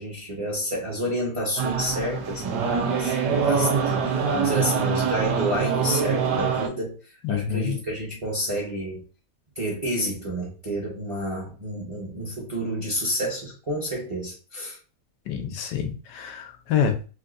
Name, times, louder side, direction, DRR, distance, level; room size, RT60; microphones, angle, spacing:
voice 1, 0.0-9.0 9.6-14.8, equal, 25° right, 0.8 m, -29 dB
sound 1, 1.6-6.7, right 6 dB, 75° right, 1.3 m, -24 dB
voice 2, 7.2-7.8 15.3-17.1, left 8 dB, 85° left, 1.3 m, -27 dB
3.5 x 2.6 x 2.5 m
omnidirectional pair, 1.8 m